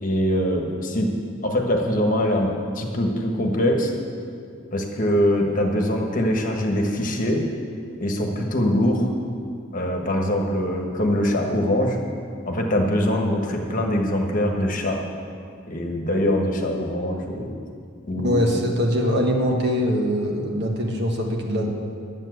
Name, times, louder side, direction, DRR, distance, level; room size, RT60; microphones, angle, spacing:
voice 1, 0.0-1.1 1.4-3.9 4.7-7.4 8.0-9.1 9.7-12.0 12.5-15.0 15.7-17.5 18.1-18.4, equal, 40° left, 1 dB, 1.3 m, -23 dB
voice 2, 18.2-21.7, equal, 55° right, 1 dB, 1.5 m, -22 dB
10.0 x 7.5 x 7.9 m, 2.4 s
head